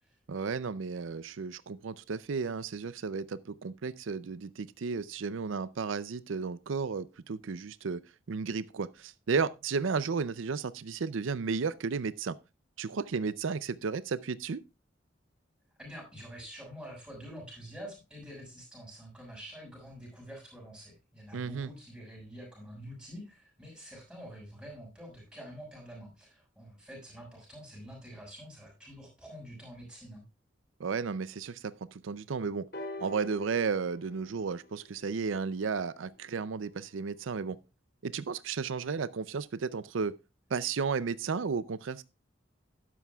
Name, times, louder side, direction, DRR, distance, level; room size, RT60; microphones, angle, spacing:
voice 1, 0.3-8.0 8.3-12.4 12.8-14.6 21.3-21.7 30.8-32.7 33.0-37.6 38.0-40.2 40.5-42.0, right 5 dB, 85° right, 0.5 m, -33 dB
voice 2, 15.8-30.2, equal, 5° right, 6.6 m, -47 dB
sound 1, 32.7-36.6 37.5-37.6, left 2 dB, 50° left, 2.9 m, -46 dB
12.5 x 11.0 x 2.3 m
head